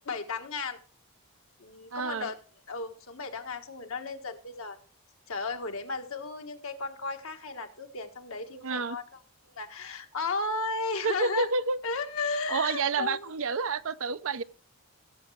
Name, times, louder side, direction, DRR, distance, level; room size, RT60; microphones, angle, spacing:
voice 1, 0.1-0.8 1.6-2.4 2.7-4.8 5.3-9.0 9.5-11.5 11.8-13.2, left 3 dB, 65° left, 1.4 m, -34 dB
voice 2, 1.9-2.3 8.6-9.0 11.0-11.8 12.5-14.4, right 4 dB, 65° right, 0.6 m, -29 dB
17.0 x 7.3 x 3.2 m
head